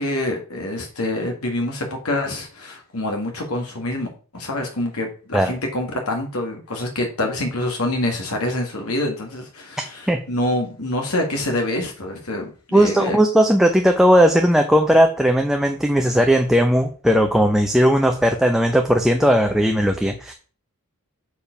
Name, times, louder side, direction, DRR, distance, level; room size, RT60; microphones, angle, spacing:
voice 1, 0.0-13.2, left 1 dB, 70° left, 2 dB, 1.8 m, -26 dB
voice 2, 12.7-20.3, equal, ahead, 3 dB, 0.6 m, -17 dB
7.0 x 4.7 x 5.1 m, 0.38 s
head